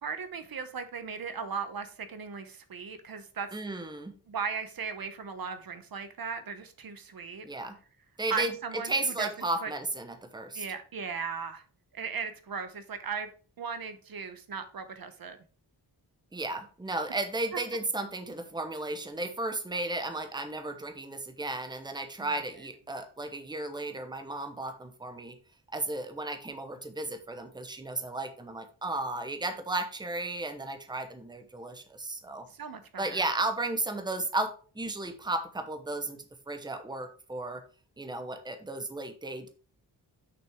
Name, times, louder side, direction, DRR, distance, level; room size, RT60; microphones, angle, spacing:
voice 1, 0.0-3.5 4.3-7.4 8.3-9.3 9.6-9.7 10.5-11.6 11.9-13.3 13.6-15.4 17.5-17.6 32.5-33.2, right 6 dB, 60° right, 9 dB, 0.9 m, -37 dB
voice 2, 3.5-4.1 7.4-7.8 8.2-8.5 8.8-10.7 16.3-25.3 25.7-32.5 33.0-36.2 36.5-37.6 38.0-39.5, right 2 dB, 10° right, 7 dB, 0.9 m, -34 dB
6.2 x 5.9 x 3.5 m, 0.39 s
wide cardioid pair, 125°, 41 cm